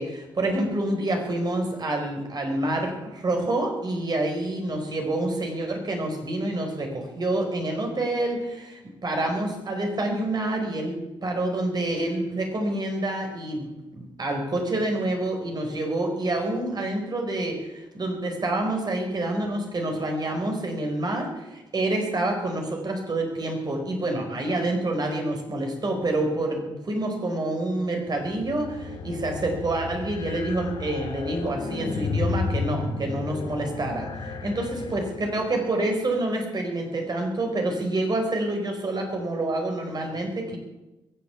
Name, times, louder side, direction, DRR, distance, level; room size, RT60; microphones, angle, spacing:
voice 1, 0.0-40.6, right 2 dB, 45° right, 3 dB, 4.5 m, -27 dB
sound 1, 28.1-35.5, left 4 dB, 70° left, 3.0 m, -32 dB
22.0 x 8.2 x 7.1 m, 1.0 s
supercardioid pair, 55°, 10 cm